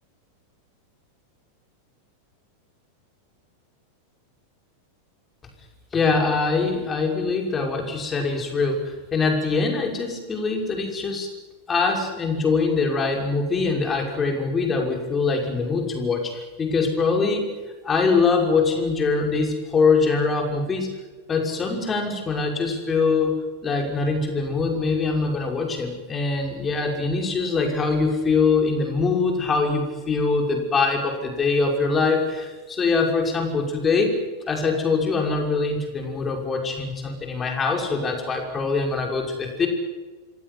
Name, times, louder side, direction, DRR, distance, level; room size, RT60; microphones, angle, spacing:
voice 1, 5.9-11.3 11.7-17.5 17.8-20.9 21.3-34.1 34.5-39.7, left 4 dB, 20° left, 2 dB, 6.0 m, -23 dB
27.0 x 17.0 x 9.7 m, 1.3 s
figure-of-eight pair, 90°, 0 cm